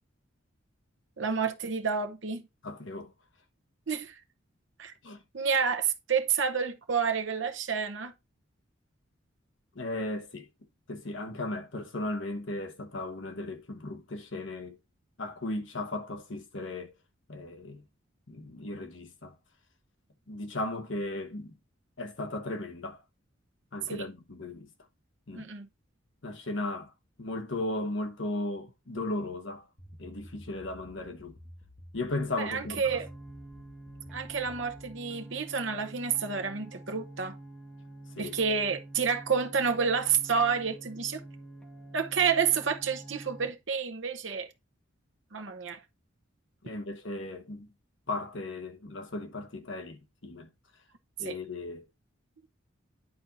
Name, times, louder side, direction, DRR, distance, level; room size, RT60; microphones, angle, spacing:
voice 1, 1.2-2.4 3.9-4.2 4.8-4.9 5.3-8.1 23.9-24.1 25.3-25.7 32.4-33.1 34.1-37.3 38.2-41.2 41.9-44.5 45.3-45.8 51.2-51.4, right 6 dB, 65° right, 0.9 m, -29 dB
voice 2, 2.6-3.1 5.0-5.2 9.7-10.5 10.9-14.8 15.2-16.9 17.3-17.8 18.3-19.3 20.3-21.5 22.0-23.0 23.7-24.7 25.3-25.5 26.2-26.9 27.2-29.6 30.0-31.3 31.9-33.0 38.2-38.4 46.6-47.7 48.1-50.5 51.2-51.8, left 2 dB, 65° left, 1.2 m, -36 dB
sound 1, 29.8-35.0, equal, 35° left, 2.1 m, -51 dB
sound 2, 32.9-43.5, right 1 dB, 5° left, 1.2 m, -47 dB
9.3 x 4.3 x 4.0 m
head